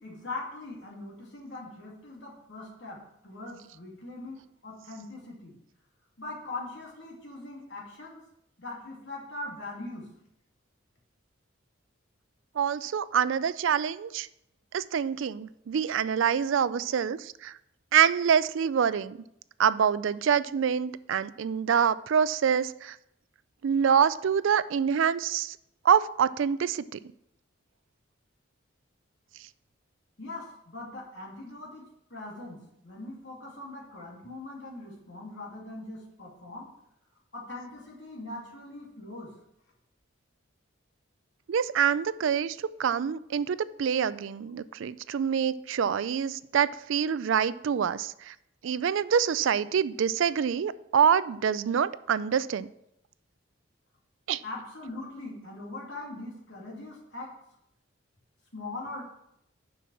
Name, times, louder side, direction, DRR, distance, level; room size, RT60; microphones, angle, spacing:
voice 1, 0.0-5.5 6.2-8.2 8.6-10.1 30.2-36.7 37.3-39.4 54.4-57.3 58.5-59.0, left 2 dB, 60° left, -2 dB, 2.6 m, -41 dB
voice 2, 12.6-14.3 14.7-17.5 17.9-19.2 19.6-23.0 23.6-25.6 25.8-27.0 41.5-48.3 48.6-52.7 54.3-54.4, right 7 dB, 70° right, 16 dB, 0.4 m, -26 dB
6.9 x 6.0 x 6.3 m, 0.78 s
head